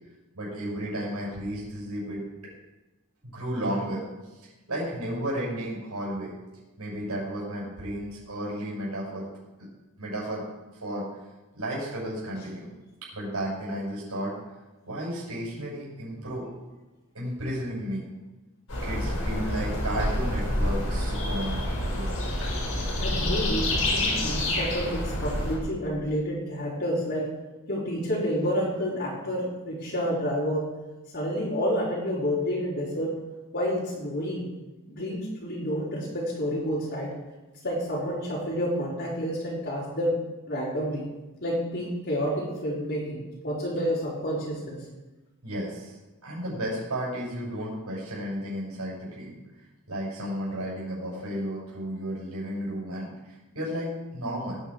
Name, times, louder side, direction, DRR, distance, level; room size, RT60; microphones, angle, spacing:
voice 1, 0.3-2.2 3.2-4.0 4.4-6.3 6.8-9.3 10.0-10.4 10.8-11.0 11.5-12.7 13.1-14.3 14.8-16.6 17.1-18.0 18.8-21.6 21.9-22.2 45.4-46.0 46.2-49.3 49.9-54.6, equal, 90° right, -6 dB, 6.4 m, -33 dB
sound 1, 18.7-25.6, left 1 dB, 70° left, 5.5 m, -28 dB
voice 2, 23.0-27.3 27.7-30.7 31.1-33.2 33.5-34.5 34.9-37.1 37.6-40.2 40.5-41.0 41.4-44.8, equal, 55° left, -9 dB, 4.3 m, -29 dB
18.5 x 9.8 x 4.8 m, 1.1 s
head